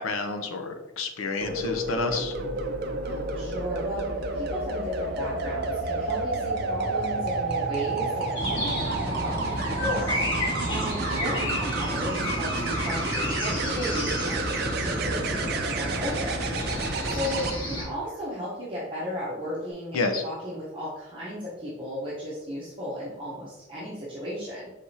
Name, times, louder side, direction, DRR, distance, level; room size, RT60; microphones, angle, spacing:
voice 1, 0.0-2.3 19.9-20.2, left 3 dB, 80° left, 5 dB, 0.5 m, -29 dB
sound 1, 1.4-17.5 19.4-19.7, right 3 dB, 50° right, 0.4 m, -30 dB
voice 2, 3.0-16.5 17.0-24.7, equal, 25° right, -9 dB, 0.9 m, -35 dB
sound 2, 8.4-17.8, left 1 dB, 60° left, 1.4 m, -31 dB
4.7 x 3.4 x 2.7 m, 1.1 s
head